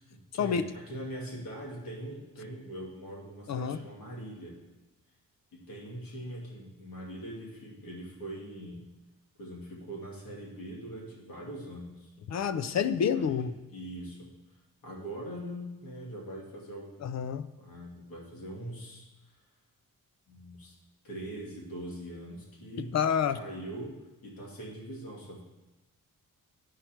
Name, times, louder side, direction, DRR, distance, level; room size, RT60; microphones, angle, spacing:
voice 1, 0.0-4.6 5.5-8.9 9.4-12.1 12.6-12.8 13.1-13.4 13.7-14.3 14.8-17.2 17.6-19.1 20.3-20.7 21.0-23.0 23.3-25.4, right 1 dB, 90° left, -4 dB, 2.6 m, -42 dB
voice 2, 3.5-3.8 12.3-13.5 17.0-17.5 22.8-23.4, left 7 dB, 50° left, 11 dB, 0.5 m, -28 dB
11.5 x 4.7 x 4.5 m, 1.1 s
wide cardioid pair, 115°, 34 cm